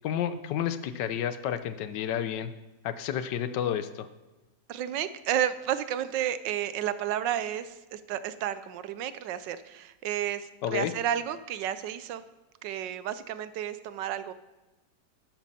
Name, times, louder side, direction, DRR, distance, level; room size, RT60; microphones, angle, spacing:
voice 1, 0.0-2.5 2.8-4.1 10.6-10.9, left 9 dB, 80° left, 12 dB, 1.3 m, -30 dB
voice 2, 4.7-12.2 12.6-14.3, right 11 dB, 85° right, 14 dB, 1.3 m, -31 dB
12.5 x 10.5 x 4.2 m, 1.1 s
omnidirectional pair, 1.9 m